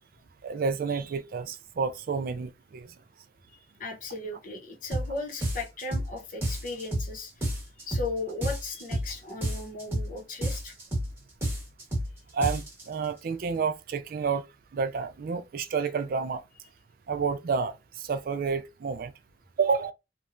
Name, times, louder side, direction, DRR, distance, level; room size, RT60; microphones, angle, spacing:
voice 1, 0.4-2.9 12.3-14.5 14.7-16.4 17.1-19.1 19.6-19.9, right 5 dB, 55° right, 0.3 m, -29 dB
voice 2, 3.8-7.3 7.8-10.8, left 2 dB, 50° left, 0.7 m, -36 dB
sound 1, 4.9-5.1 5.4-6.1 6.4-7.1 7.4-8.1 8.4-9.1 9.4-10.1 10.4-11.1 11.4-12.1 12.4-12.9, right 1 dB, 15° right, 1.1 m, -30 dB
3.0 x 2.2 x 2.4 m
head